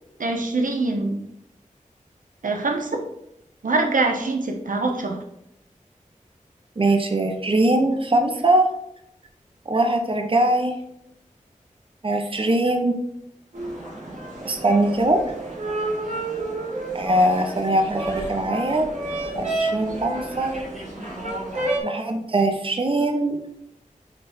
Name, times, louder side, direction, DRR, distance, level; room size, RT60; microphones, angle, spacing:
voice 1, 0.2-1.2 2.4-3.0 3.6-5.2, right 3 dB, 80° right, 3 dB, 1.0 m, -24 dB
voice 2, 6.8-8.7 9.7-10.8 12.0-13.0 14.4-15.2 16.9-18.9 19.3-20.6 21.8-23.5, right 1 dB, 40° right, 4 dB, 0.9 m, -21 dB
sound 1, 13.5-21.8, right 2 dB, 65° right, 2.6 m, -30 dB
8.4 x 3.3 x 4.3 m, 0.78 s
wide cardioid pair, 60°, 14 cm